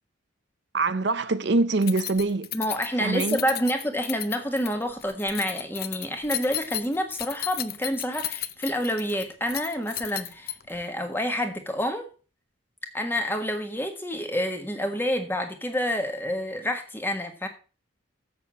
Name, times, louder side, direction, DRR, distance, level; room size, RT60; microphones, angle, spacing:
voice 1, 0.7-2.5 3.0-3.4, right 3 dB, 60° right, 0.6 m, -24 dB
Keys jangling, 1.8-10.8, left 13 dB, 50° left, 0.6 m, -34 dB
voice 2, 2.5-12.1 12.9-17.5, equal, 10° left, 1.5 m, -28 dB
7.8 x 6.9 x 7.5 m
head